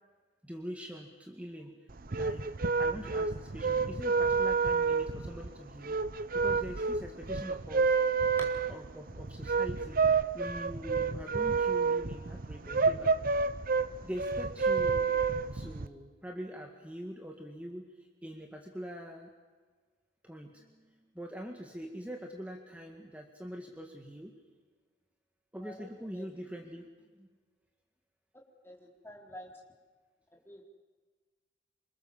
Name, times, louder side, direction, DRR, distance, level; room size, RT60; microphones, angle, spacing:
voice 1, 0.4-1.7 2.2-2.4 2.8-8.0 8.7-10.0 10.3-13.1 14.0-15.1 15.5-19.3 20.2-24.3 25.5-26.9 27.2-27.3, equal, 10° right, 1 dB, 2.1 m, -44 dB
sound 1, 1.9-15.9, right 5 dB, 50° right, 0.9 m, -29 dB
voice 2, 25.6-26.3 28.6-29.6 30.5-30.6, equal, 15° left, -1 dB, 4.0 m, -49 dB
27.5 x 26.0 x 7.4 m, 1.4 s
head